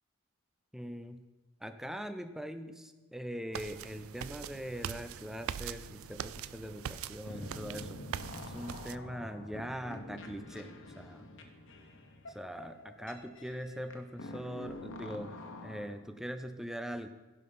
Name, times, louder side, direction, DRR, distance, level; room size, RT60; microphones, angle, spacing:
voice 1, 0.7-1.2 1.6-8.0 8.4-10.7 10.9-11.3 12.3-17.1, equal, ahead, 9 dB, 0.4 m, -42 dB
sound 1, 3.5-8.9, right 9 dB, 70° right, 0.3 m, -42 dB
sound 2, 7.3-15.9, left 1 dB, 60° left, 1.3 m, -47 dB
16.0 x 5.7 x 5.5 m, 1.2 s
head